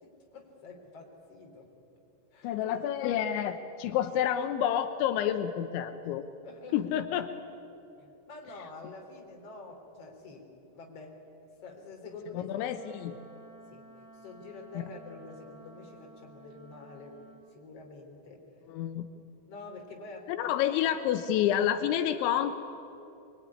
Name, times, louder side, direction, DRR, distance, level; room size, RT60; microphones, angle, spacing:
voice 1, 0.0-1.7 2.3-2.8 6.4-6.9 8.0-11.2 11.6-12.5 13.7-17.2 17.5-18.4 19.5-20.5, left 3 dB, 35° left, 1 dB, 4.1 m, -47 dB
voice 2, 2.4-6.2 6.7-7.3 12.3-13.2 14.8-14.9 18.7-19.1 20.3-22.6, left 10 dB, 85° left, 8 dB, 3.3 m, -29 dB
Wind instrument woodwind instrument, 12.6-17.5, right 2 dB, 35° right, 3.5 m, -54 dB
24.0 x 23.0 x 9.9 m, 2.9 s
omnidirectional pair, 5.3 m